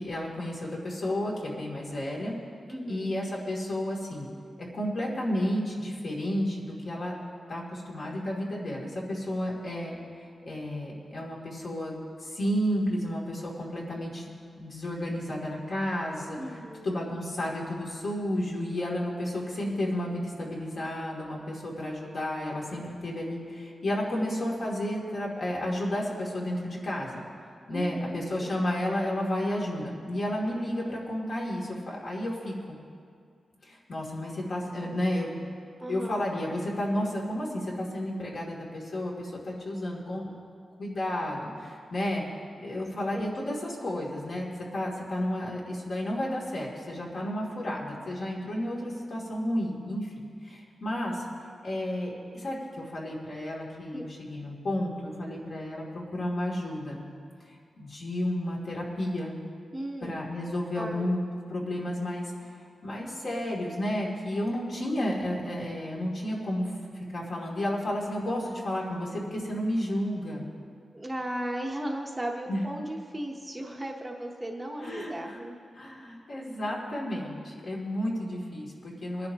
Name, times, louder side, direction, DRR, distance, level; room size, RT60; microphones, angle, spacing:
voice 1, 0.0-2.3 2.9-4.3 4.6-7.1 7.5-10.0 10.4-11.9 12.2-14.3 14.6-16.6 16.8-27.2 27.7-32.8 33.6-35.3 35.9-40.3 40.8-42.2 42.6-44.4 44.7-51.2 51.6-57.0 57.8-59.4 60.0-61.2 61.5-62.5 62.8-70.5 72.5-72.6 74.8-75.4 75.7-79.3, left 1 dB, 55° left, -4 dB, 2.6 m, -32 dB
voice 2, 2.7-3.1 16.4-16.9 27.7-28.6 35.8-36.2 43.1-43.3 53.9-54.1 59.7-60.1 60.7-61.1 70.9-75.6, right 1 dB, 15° right, 1 dB, 0.9 m, -36 dB
22.5 x 10.5 x 2.9 m, 2.2 s
wide cardioid pair, 130°, 0 cm